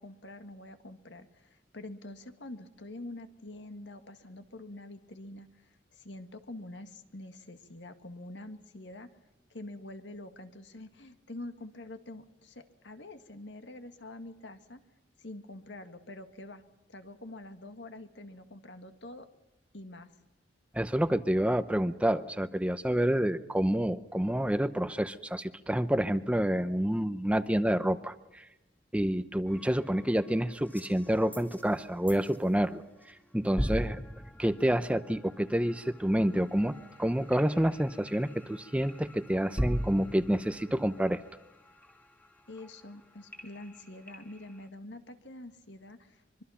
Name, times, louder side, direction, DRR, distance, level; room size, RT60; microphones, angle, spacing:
voice 1, 0.0-5.5 5.9-9.1 9.5-14.8 15.2-16.6 16.9-19.3 19.7-20.1 42.5-46.4, left 1 dB, 70° left, 8 dB, 1.9 m, -46 dB
voice 2, 20.7-28.5 28.9-32.8 33.3-34.0 34.4-36.7 37.0-41.2, equal, 5° right, 12 dB, 0.7 m, -28 dB
sound 1, 29.5-32.7 33.0-33.3 33.6-44.7, equal, 10° left, 2.4 m, -41 dB
24.5 x 24.0 x 5.7 m, 0.99 s
head